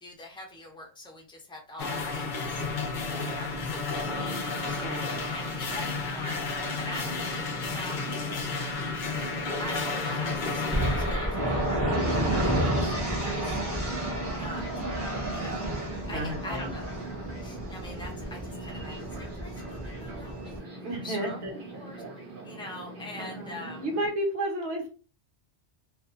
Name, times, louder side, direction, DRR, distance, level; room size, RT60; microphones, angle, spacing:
voice 1, 0.0-2.6 3.0-6.5 6.8-8.3 9.6-13.4 14.2-14.7 15.3-15.7 16.1-17.0 17.4-21.4 21.7-22.0 22.4-23.8, left 1 dB, 5° left, 0 dB, 0.4 m, -44 dB
sound 1, 1.8-11.3, left 4 dB, 55° left, 0.5 m, -32 dB
voice 2, 3.2-3.7 4.7-5.3 16.1-16.7 20.8-21.9 23.2-24.9, right 1 dB, 70° right, 0 dB, 1.2 m, -33 dB
Fixed-wing aircraft airplane, 4.3-24.1, right 2 dB, 50° right, 0.8 m, -43 dB
sound 2, 10.7-20.6, right 1 dB, 15° right, 0.8 m, -30 dB
2.5 x 2.2 x 2.5 m, 0.35 s
omnidirectional pair, 1.2 m